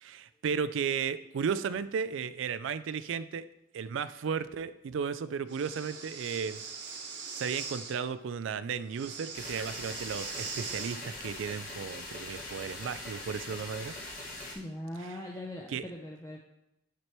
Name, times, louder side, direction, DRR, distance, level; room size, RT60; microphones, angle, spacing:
voice 1, 0.0-3.4 3.7-6.6 7.3-14.0 15.0-15.2 15.7-15.9, right 6 dB, 80° right, 14 dB, 0.3 m, -34 dB
Breathing, 5.5-7.9 8.9-11.0, right 5 dB, 60° right, 1.1 m, -41 dB
sound 1, 9.3-14.5, left 2 dB, 45° left, 1.6 m, -42 dB
voice 2, 14.5-16.4, left 1 dB, 15° left, -1 dB, 0.5 m, -40 dB
9.5 x 4.4 x 3.1 m, 0.84 s
head